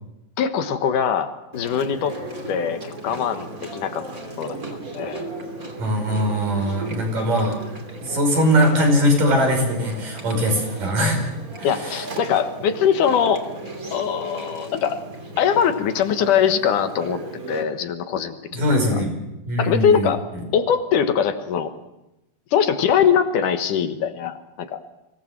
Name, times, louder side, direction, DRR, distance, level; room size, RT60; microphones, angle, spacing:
voice 1, 0.4-2.1 2.5-4.0 4.4-4.6 4.9-5.3 11.6-13.4 13.9-15.0 15.4-17.2 17.5-18.4 18.9-19.0 19.6-20.2 20.5-21.7 22.5-24.8, left 8 dB, 70° left, 8 dB, 2.7 m, -22 dB
Chewing mastication, 1.5-17.6, right 2 dB, 25° right, 3.0 m, -36 dB
voice 2, 5.8-7.6 8.0-11.2 11.6-12.0 18.5-19.1 19.4-20.1, equal, 75° right, 2 dB, 7.3 m, -21 dB
24.5 x 18.0 x 7.3 m, 0.94 s
omnidirectional pair, 3.9 m